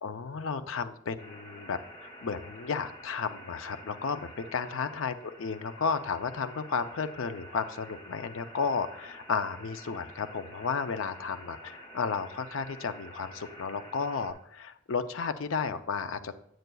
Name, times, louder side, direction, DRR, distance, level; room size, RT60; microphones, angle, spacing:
voice 1, 0.0-16.3, left 5 dB, 70° left, 10 dB, 0.5 m, -33 dB
sound 1, 1.2-14.3, equal, 25° left, 1.0 m, -49 dB
9.3 x 7.7 x 2.3 m, 0.75 s
head